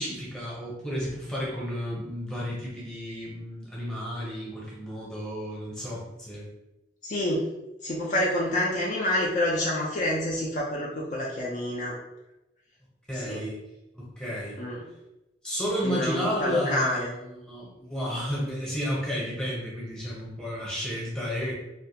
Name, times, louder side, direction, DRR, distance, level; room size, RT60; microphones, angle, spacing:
voice 1, 0.0-6.5 13.1-13.6 13.9-14.6 15.4-21.5, equal, 5° left, -6 dB, 0.8 m, -32 dB
voice 2, 7.0-7.4 7.8-12.0 13.1-13.4 14.6-14.9 15.8-17.1, left 1 dB, 45° left, -3 dB, 0.4 m, -27 dB
2.3 x 2.2 x 2.8 m, 0.95 s
head